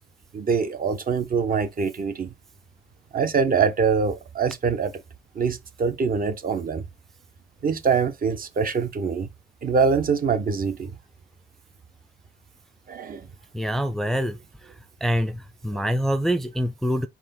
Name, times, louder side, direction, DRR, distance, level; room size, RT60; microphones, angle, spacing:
voice 1, 0.3-2.3 3.1-4.9 5.3-6.8 7.6-9.3 9.6-11.0 12.9-13.3 15.7-15.8, right 5 dB, 45° right, 1.1 m, -24 dB
voice 2, 13.5-14.4 15.0-17.1, equal, ahead, 0.4 m, -25 dB
4.7 x 2.8 x 3.8 m
cardioid pair, 90°, 20 cm